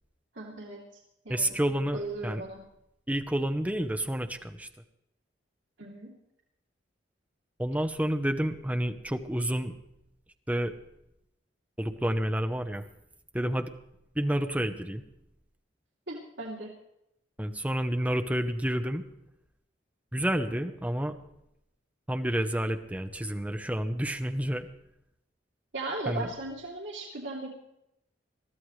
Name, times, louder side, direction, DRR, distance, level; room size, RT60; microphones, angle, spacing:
voice 1, 0.3-0.8 1.2-1.5 1.9-2.6 5.8-6.1 16.1-16.7 25.7-27.5, right 2 dB, 80° right, -3 dB, 2.8 m, -37 dB
voice 2, 1.3-2.4 3.1-4.7 7.6-9.7 10.5-10.7 11.8-12.8 13.3-13.7 14.1-15.0 17.4-19.0 20.1-21.2 22.1-24.7 26.1-26.3, right 1 dB, 10° right, 6 dB, 0.9 m, -29 dB
22.0 x 14.0 x 3.2 m, 0.82 s
head